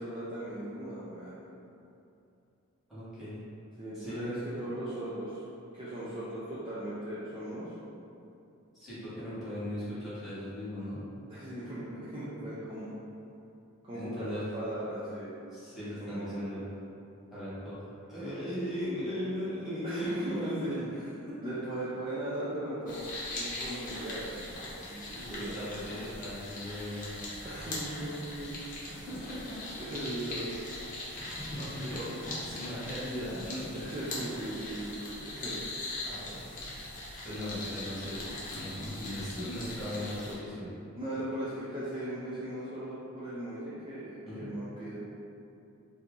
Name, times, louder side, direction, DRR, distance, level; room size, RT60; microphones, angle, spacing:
voice 1, 0.0-1.4 3.8-5.4 5.7-7.7 11.3-12.9 13.8-15.4 15.8-16.6 19.8-21.0 21.4-23.0 23.4-24.6 24.8-25.6 27.4-28.6 28.9-29.0 29.8-30.6 31.2-31.4 33.7-36.1 37.5-37.6 40.9-45.0, right 1 dB, 25° right, -11 dB, 0.5 m, -38 dB
voice 2, 2.9-3.4 3.9-4.3 8.7-11.0 13.9-14.4 15.5-16.6 17.3-20.7 21.3-21.4 25.1-27.3 29.1-30.0 31.2-33.7 36.0-36.5 37.2-40.7 44.2-44.5, left 1 dB, ahead, -14 dB, 1.3 m, -38 dB
sound 1, 22.9-40.3, left 2 dB, 35° left, 0.7 m, -41 dB
2.7 x 2.7 x 3.6 m, 2.7 s
head